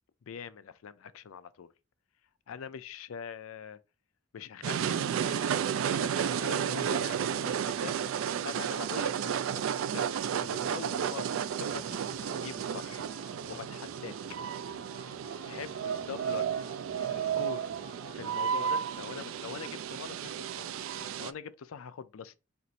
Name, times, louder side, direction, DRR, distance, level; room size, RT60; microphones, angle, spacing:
voice 1, 0.2-1.7 2.5-3.8 4.3-8.0 8.4-10.1 10.4-13.1 13.5-14.1 15.4-16.5 17.0-17.7 18.1-22.4, left 7 dB, 85° left, 0.4 m, -44 dB
sound 1, 4.6-21.3, right 8 dB, 75° right, 0.3 m, -32 dB
sound 2, 11.5-18.3, left 3 dB, 15° left, 0.5 m, -53 dB
4.5 x 2.5 x 3.9 m
head